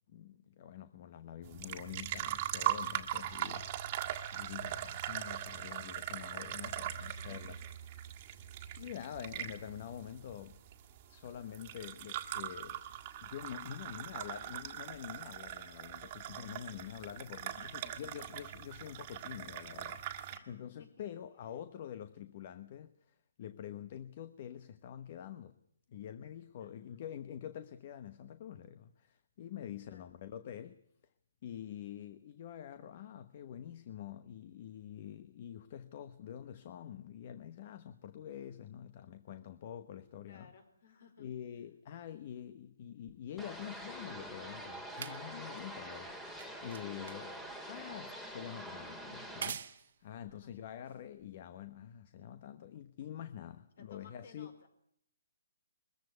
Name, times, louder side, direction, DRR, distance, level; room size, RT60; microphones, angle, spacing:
voice 1, 0.1-7.6 8.8-10.6 11.1-12.8 13.2-20.0 20.5-25.6 25.9-30.8 31.4-40.5 41.2-47.3 47.7-54.5, left 10 dB, 40° left, 1.0 m, -46 dB
sound 1, 1.4-20.4, right 12 dB, 30° right, 1.8 m, -41 dB
voice 2, 6.8-7.7 8.5-8.9 13.9-14.4 17.5-18.0 20.3-20.5 20.8-21.2 26.6-26.9 29.9-30.1 40.2-41.3 47.2-47.3 50.2-50.6 53.8-54.7, left 5 dB, 55° left, 4.6 m, -60 dB
sound 2, 43.1-51.7 52.5-52.6, right 8 dB, 50° right, 1.4 m, -49 dB
sound 3, 43.4-49.5, right 1 dB, 5° left, 2.1 m, -45 dB
22.0 x 14.5 x 9.4 m
hypercardioid pair, 160°, 0 cm